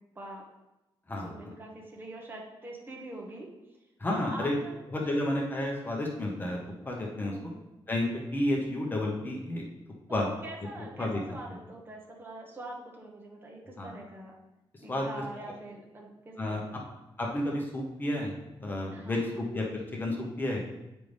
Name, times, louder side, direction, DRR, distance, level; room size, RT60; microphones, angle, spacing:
voice 1, 1.2-3.5 4.1-4.8 7.2-7.6 10.1-14.3 14.8-16.8 18.9-19.4, right 1 dB, 25° right, -1 dB, 1.1 m, -44 dB
voice 2, 4.0-4.6 4.9-6.6 6.8-7.3 7.9-9.6 10.1-10.3 11.0-11.2 13.8-13.9 14.9-15.1 16.4-16.6 17.2-18.3 18.6-20.7, left 1 dB, 20° left, -1 dB, 0.9 m, -31 dB
7.7 x 5.2 x 3.4 m, 0.98 s
wide cardioid pair, 175°, 9 cm